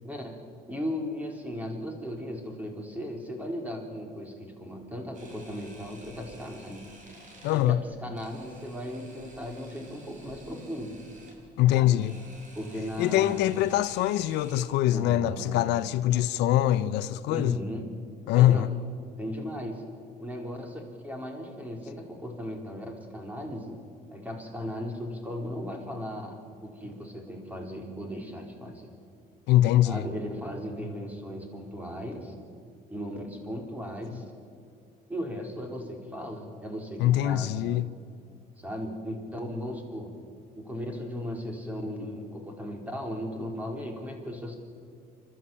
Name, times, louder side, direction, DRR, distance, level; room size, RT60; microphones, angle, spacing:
voice 1, 0.0-0.4 0.7-6.9 7.5-11.0 11.8-12.0 12.5-13.6 14.9-15.7 17.3-17.9 18.3-18.7 19.2-19.8 20.2-23.8 24.1-28.9 29.8-32.3 32.9-34.2 35.1-37.6 38.6-40.1 40.6-44.6, equal, 10° right, 4.1 m, -37 dB
Camera, 5.1-14.6, right 2 dB, 45° right, 6.4 m, -52 dB
voice 2, 7.4-7.8 11.6-12.1 13.0-17.6 18.3-18.8 29.5-30.0 37.0-37.9, left 13 dB, 90° left, 0.7 m, -23 dB
29.0 x 12.5 x 8.6 m
cardioid pair, 110°, 17 cm